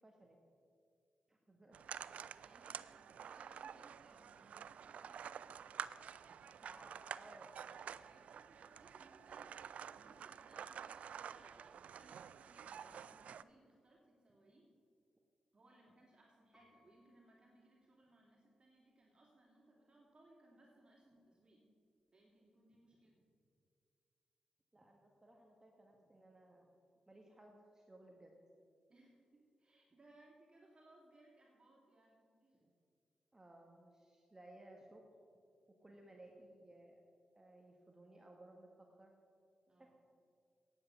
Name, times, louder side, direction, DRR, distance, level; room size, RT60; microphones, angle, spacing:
voice 1, 0.0-0.4 1.3-1.9 2.8-2.9 6.3-7.6 24.7-26.7 27.1-28.4 32.7-32.8 33.3-35.0 35.8-37.0 37.3-39.1 39.8-39.9, right 1 dB, 20° right, 1 dB, 1.5 m, -60 dB
sound 1, 1.7-13.4, right 8 dB, 70° right, 0.3 m, -50 dB
voice 2, 1.8-6.0 7.9-14.7 15.5-21.6 22.1-23.2 28.9-32.6 39.7-39.9, right 1 dB, 40° right, -3 dB, 2.6 m, -67 dB
Piano, 16.5-18.5 19.1-19.2, left 2 dB, 5° right, 2.6 m, -75 dB
9.6 x 8.3 x 6.9 m, 2.3 s
supercardioid pair, 55°, 2 cm